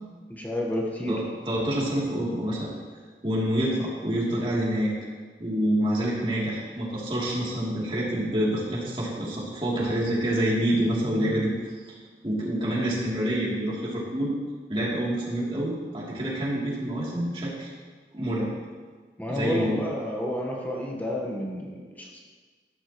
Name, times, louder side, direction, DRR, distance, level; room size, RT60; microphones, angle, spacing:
voice 1, 0.3-1.2 19.2-22.2, left 1 dB, 10° left, -1 dB, 1.2 m, -30 dB
voice 2, 1.1-2.7 3.2-5.0 5.4-11.5 12.2-14.3 14.7-17.7 18.1-18.5 19.3-19.9, right 1 dB, 30° right, -6 dB, 3.0 m, -27 dB
13.5 x 12.0 x 3.1 m, 1.5 s
head